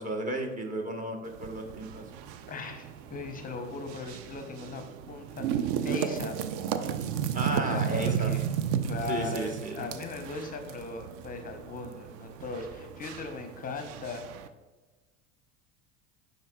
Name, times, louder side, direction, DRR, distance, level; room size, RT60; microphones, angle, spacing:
voice 1, 0.0-2.0 7.3-8.3 9.1-9.9, right 2 dB, 20° right, 3 dB, 1.1 m, -33 dB
sound 1, 1.2-14.5, right 8 dB, 50° right, 0.5 m, -34 dB
voice 2, 2.5-6.4 7.5-8.5 8.8-14.3, left 4 dB, 25° left, 6 dB, 0.7 m, -38 dB
10.5 x 3.9 x 2.2 m, 1.2 s
figure-of-eight pair, 75°, 36 cm